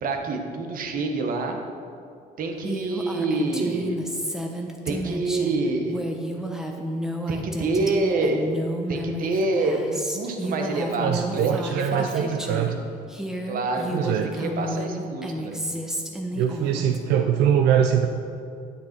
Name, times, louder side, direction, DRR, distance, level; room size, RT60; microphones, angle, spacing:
voice 1, 0.0-1.6 2.4-4.0 4.8-6.0 7.3-8.6 8.9-12.7 13.4-15.6, right 3 dB, 55° right, 4 dB, 1.3 m, -27 dB
Female speech woman speaking, 2.6-12.7 13.1-17.0, equal, 5° right, 1.0 m, -31 dB
voice 2, 11.0-12.8 13.9-14.3 16.3-18.1, right 9 dB, 90° right, 4 dB, 0.5 m, -23 dB
9.4 x 8.5 x 4.4 m, 2.4 s
cardioid pair, 110°, 17 cm